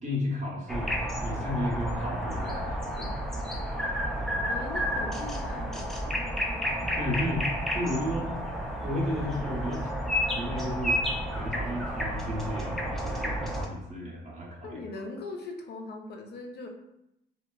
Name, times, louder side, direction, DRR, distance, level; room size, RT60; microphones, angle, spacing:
voice 1, 0.0-3.0 6.8-7.4 7.7-8.3 8.8-9.9 10.4-11.0 11.3-14.8, left 1 dB, 35° right, -3 dB, 0.7 m, -33 dB
sound 1, 0.7-13.7, equal, ahead, 0.4 m, -31 dB
voice 2, 4.5-6.3 14.6-16.7, left 3 dB, 55° left, 2 dB, 0.5 m, -40 dB
2.8 x 2.2 x 2.2 m, 0.84 s
cardioid pair, 90°, 20 cm